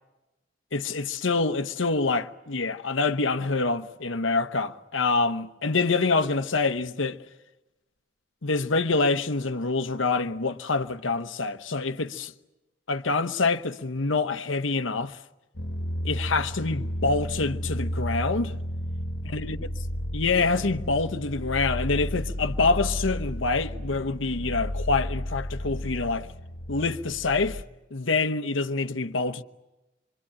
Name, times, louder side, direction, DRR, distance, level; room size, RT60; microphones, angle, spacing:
voice 1, 0.7-7.2 8.4-12.3 12.9-15.2 16.0-18.5 19.3-19.6 20.1-26.3 26.7-27.6 27.9-29.4, left 3 dB, 90° left, 1.0 m, -26 dB
sound 1, 15.5-27.6, equal, 70° left, 1.5 m, -33 dB
25.5 x 24.5 x 8.7 m
head